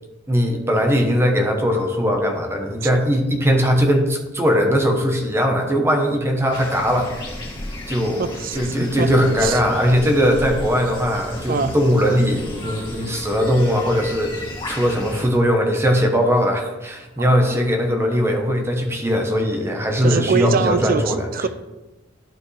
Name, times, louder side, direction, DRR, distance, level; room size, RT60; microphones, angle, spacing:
voice 1, 0.3-7.3 7.9-21.3, equal, 15° right, 3 dB, 1.0 m, -20 dB
sound 1, 6.5-15.2, left 1 dB, 25° left, 2.4 m, -34 dB
voice 2, 8.2-9.1 9.4-9.6 11.5-11.8 17.2-17.6 20.0-21.5, right 5 dB, 50° right, 12 dB, 0.5 m, -24 dB
12.0 x 5.2 x 3.3 m, 1.1 s
head